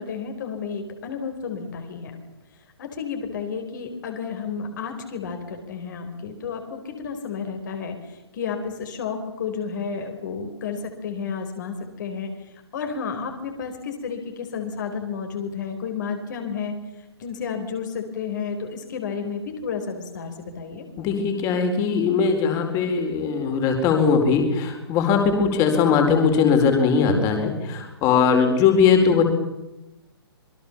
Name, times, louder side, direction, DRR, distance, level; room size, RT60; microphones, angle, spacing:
voice 1, 0.0-2.2 2.8-16.8 17.2-20.9, left 6 dB, 45° left, 5 dB, 4.1 m, -31 dB
voice 2, 21.0-29.2, left 6 dB, 25° left, 5 dB, 4.6 m, -20 dB
27.0 x 22.0 x 7.1 m, 0.97 s
figure-of-eight pair, 125°, 14 cm